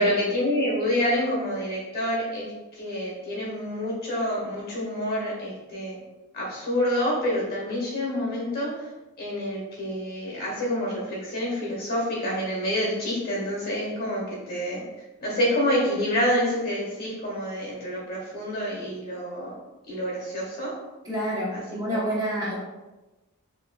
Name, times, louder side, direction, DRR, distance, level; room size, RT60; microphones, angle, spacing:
voice 1, 0.0-6.0 6.3-8.9 9.2-14.8 15.2-19.5 19.9-20.7 21.5-21.6 21.9-22.0, equal, 45° left, -4 dB, 1.5 m, -27 dB
voice 2, 21.0-22.5, equal, 15° right, -8 dB, 0.8 m, -28 dB
4.7 x 3.0 x 2.2 m, 1.1 s
head